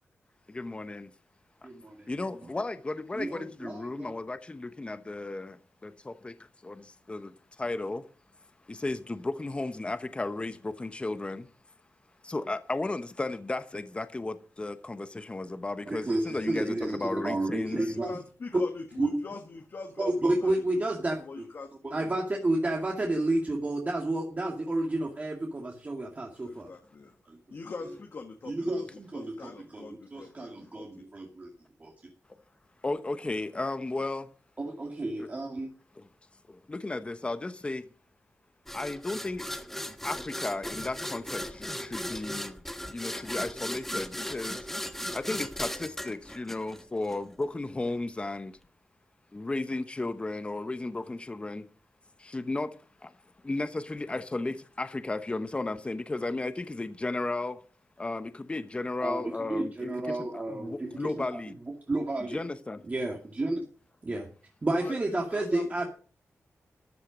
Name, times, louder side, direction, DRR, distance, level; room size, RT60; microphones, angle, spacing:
voice 1, 0.5-1.1 2.1-6.4 6.6-8.0 8.7-11.5 12.2-18.0 24.7-24.9 32.8-34.3 35.2-35.3 36.0-36.1 36.5-37.9 38.7-39.5 40.0-42.6 42.9-44.7 45.1-48.6 49.3-51.7 52.2-52.8 53.0-53.1 53.4-57.6 58.0-61.6 62.2-62.8, left 2 dB, 20° left, 0.9 m, -34 dB
voice 2, 1.6-2.1 3.1-4.1 15.9-18.2 18.5-18.6 19.0-19.2 20.0-21.4 21.8-26.7 27.3-27.4 28.5-31.5 31.8-31.9 34.6-35.7 59.0-59.2 59.5-60.9 61.3-61.4 61.9-62.4 62.9-63.6 64.0-64.3 64.6-65.9, right 2 dB, 30° right, 2.2 m, -31 dB
voice 3, 17.8-20.6 21.2-21.7 22.0-22.2 26.4-27.1 27.5-28.9 29.1-30.8 64.7-65.8, left 4 dB, 50° left, 1.6 m, -43 dB
sound 1, 38.7-47.2, left 1 dB, 5° left, 1.2 m, -37 dB
13.5 x 10.0 x 5.2 m
wide cardioid pair, 110°, 5 cm